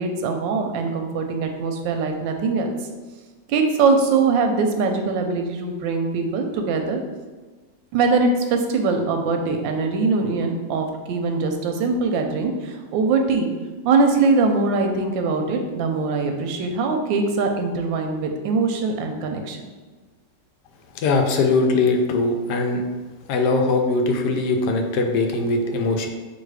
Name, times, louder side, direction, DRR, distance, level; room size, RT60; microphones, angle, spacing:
voice 1, 0.0-2.8 3.5-7.0 7.9-13.5 13.8-19.7, right 4 dB, 90° right, 4 dB, 1.3 m, -22 dB
voice 2, 20.9-22.8 23.3-26.1, left 3 dB, 75° left, 3 dB, 1.1 m, -21 dB
4.0 x 2.7 x 4.7 m, 1.3 s
omnidirectional pair, 2.0 m